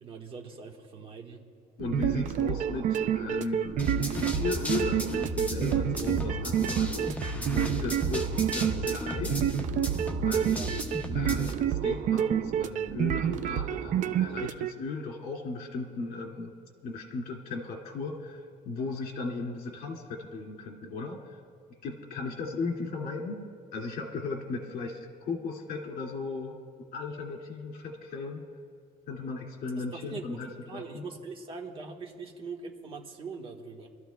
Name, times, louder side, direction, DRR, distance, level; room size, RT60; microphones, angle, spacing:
voice 1, 0.0-1.5 10.5-10.8 29.8-30.4 30.7-33.9, right 4 dB, 35° right, 1 dB, 1.4 m, -42 dB
voice 2, 1.8-3.8 4.2-9.4 10.2-10.7 11.1-16.5 16.8-21.4 21.8-26.6 26.9-28.4 29.1-31.0, left 3 dB, 65° left, 0 dB, 2.2 m, -36 dB
sound 1, 1.8-14.7, right 9 dB, 55° right, 0.5 m, -29 dB
sound 2, 3.8-11.5, equal, 10° left, 0.9 m, -34 dB
28.0 x 13.0 x 2.3 m, 2.1 s
cardioid pair, 160°, 15 cm